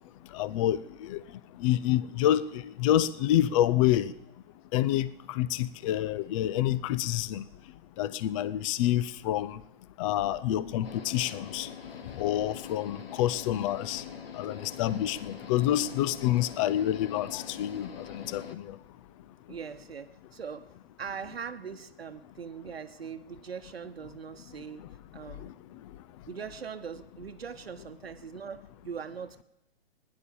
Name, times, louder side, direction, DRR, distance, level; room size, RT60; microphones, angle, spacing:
voice 1, 0.3-1.2 1.6-4.1 4.7-7.4 8.0-9.6 10.0-11.7 12.2-14.0 14.3-18.8 25.4-25.5, left 12 dB, 35° left, 0.6 m, -28 dB
sound 1, 10.8-18.6, left 7 dB, 75° left, 1.6 m, -44 dB
voice 2, 19.5-24.8 25.1-25.5 26.3-29.4, right 6 dB, 90° right, 1.0 m, -41 dB
16.5 x 10.5 x 7.1 m
hypercardioid pair, 130°, 30 cm